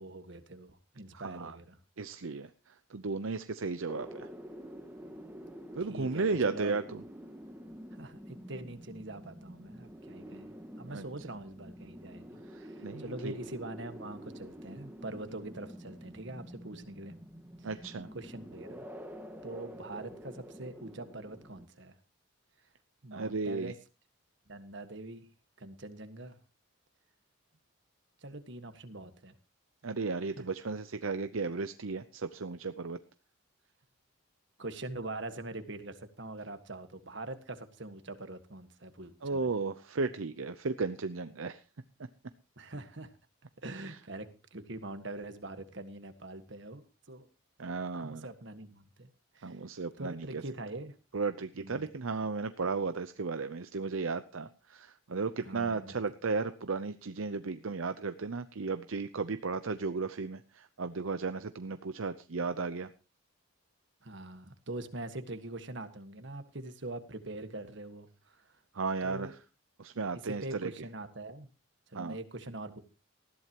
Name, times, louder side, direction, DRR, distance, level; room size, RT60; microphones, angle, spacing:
voice 1, 0.0-1.8 5.0-5.1 5.8-6.7 7.9-17.1 17.6-17.7 18.1-18.9 19.4-22.0 23.0-23.8 24.5-25.3 25.6-26.4 28.2-29.3 30.4-30.5 34.6-39.5 42.6-43.1 43.6-47.3 47.9-49.1 49.3-49.6 50.0-51.0 51.5-51.9 55.4-55.9 64.0-68.5 69.0-69.3 70.2-71.5 71.9-72.8, right 2 dB, 55° right, 9 dB, 1.6 m, -43 dB
voice 2, 1.2-1.6 2.0-2.5 2.9-4.3 5.7-7.0 10.9-11.0 12.5-13.3 17.6-18.1 23.1-23.7 29.8-33.0 39.2-41.6 43.7-44.0 47.6-48.3 49.4-50.4 51.1-62.9 68.7-69.4 69.8-70.7 71.9-72.2, right 4 dB, 70° right, 10 dB, 0.7 m, -35 dB
sound 1, 3.9-21.7, equal, 10° right, 1.6 m, -48 dB
19.5 x 14.5 x 3.0 m, 0.32 s
head